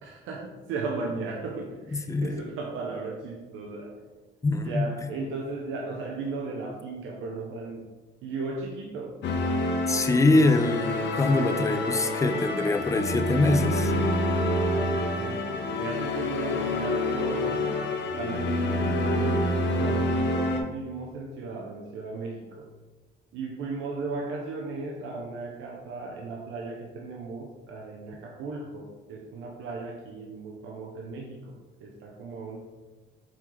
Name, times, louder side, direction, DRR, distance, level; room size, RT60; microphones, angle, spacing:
voice 1, 0.0-4.0 4.6-7.8 8.2-9.2 14.6-17.7 18.2-22.7 23.3-32.6, right 3 dB, 85° right, 0 dB, 0.6 m, -36 dB
voice 2, 1.9-2.4 4.4-4.9 9.9-13.9, left 2 dB, 15° left, 7 dB, 0.3 m, -24 dB
sound 1, 9.2-20.6, left 1 dB, 65° left, 0.6 m, -27 dB
4.4 x 3.7 x 3.0 m, 1.3 s
cardioid pair, 90°, 20 cm